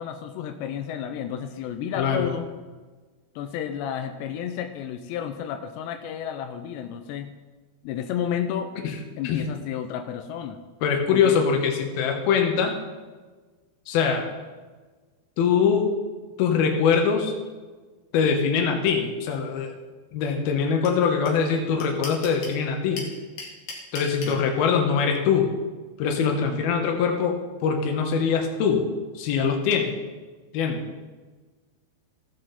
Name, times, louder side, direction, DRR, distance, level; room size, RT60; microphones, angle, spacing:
voice 1, 0.0-2.5 3.4-7.3 7.8-8.7 9.2-10.6 11.1-11.4 24.3-24.5 26.4-26.6, left 9 dB, 90° left, 7 dB, 2.9 m, -31 dB
voice 2, 2.0-2.3 8.8-8.9 9.2-9.4 10.8-12.8 13.9-14.2 15.4-15.9 16.4-17.3 18.1-19.7 20.1-23.0 23.9-25.5 26.0-27.4 27.6-28.8 29.1-29.9 30.5-30.8, left 6 dB, 70° left, 3 dB, 3.0 m, -23 dB
sound 1, 20.8-20.9 21.3-21.4 21.5-22.6 23.0-24.3, left 4 dB, 50° left, 3.0 m, -35 dB
16.5 x 7.6 x 4.2 m, 1.4 s
omnidirectional pair, 4.9 m